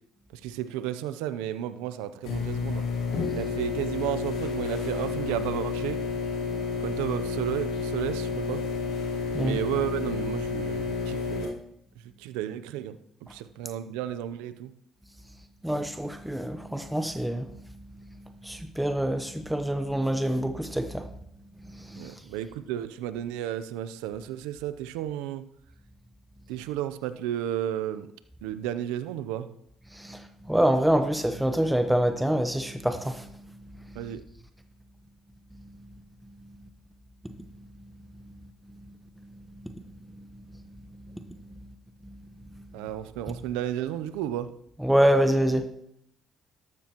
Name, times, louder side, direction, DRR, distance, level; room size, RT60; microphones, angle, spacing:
voice 1, 0.3-2.8 3.3-6.0 6.8-8.6 9.4-11.6 12.2-13.0 13.2-14.7 22.0-25.4 26.5-28.1 28.4-29.5 34.0-34.2 42.7-44.5, right 11 dB, 90° right, 0.5 m, -33 dB
sound 1, 2.2-11.5, left 4 dB, 80° left, 3.6 m, -30 dB
voice 2, 15.6-17.5 18.4-21.1 21.9-22.1 30.0-30.2 30.5-33.3 44.8-45.7, right 1 dB, 5° right, 1.0 m, -25 dB
13.0 x 12.5 x 3.0 m
supercardioid pair, 70°, 0 cm